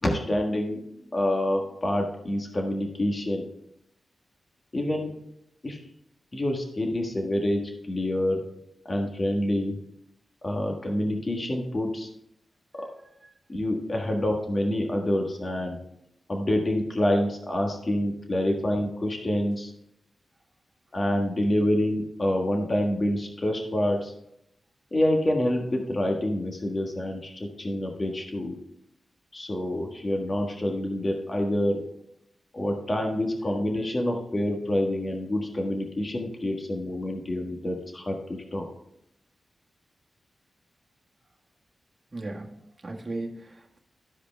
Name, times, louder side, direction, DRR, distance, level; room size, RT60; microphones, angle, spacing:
voice 1, 0.0-0.8 1.1-3.4 4.7-5.1 5.6-5.8 6.3-8.4 8.8-9.8 10.4-12.1 12.8-12.9 13.5-15.8 16.3-19.7 20.9-24.1 24.9-28.6 29.3-31.8 32.5-38.7, left 1 dB, 35° left, 1 dB, 1.5 m, -27 dB
voice 2, 42.1-43.8, right 2 dB, 35° right, -1 dB, 1.6 m, -37 dB
13.5 x 5.0 x 3.4 m, 0.77 s
cardioid pair, 75°, 0 cm